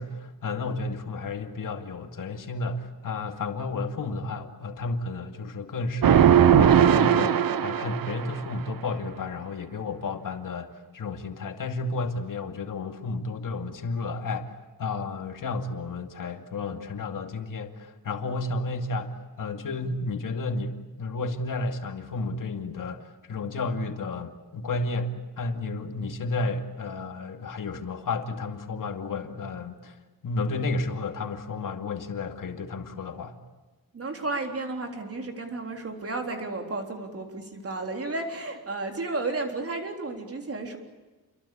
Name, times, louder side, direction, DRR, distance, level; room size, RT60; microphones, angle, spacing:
voice 1, 0.0-6.3 6.6-7.3 7.6-14.5 14.8-30.0 30.2-33.4, left 3 dB, 60° left, 5 dB, 2.4 m, -32 dB
sound 1, 6.0-8.4, right 9 dB, 70° right, 1.1 m, -19 dB
voice 2, 33.9-40.8, right 2 dB, 40° right, 3 dB, 3.8 m, -33 dB
29.0 x 23.0 x 8.6 m, 1.2 s
wide cardioid pair, 175°, 36 cm